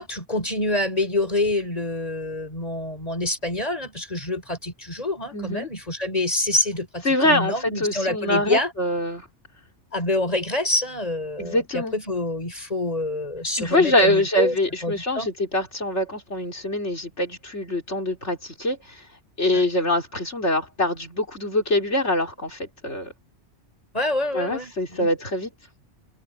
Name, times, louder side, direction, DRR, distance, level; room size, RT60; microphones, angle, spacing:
voice 1, 0.0-8.7 9.9-14.6 14.8-15.3 23.9-25.1, left 2 dB, 35° left, 5.8 m, -26 dB
voice 2, 5.3-5.7 7.0-9.3 11.4-11.9 13.6-19.0 19.4-23.1 24.3-25.5, left 1 dB, 75° left, 4.7 m, -24 dB
omnidirectional pair, 1.2 m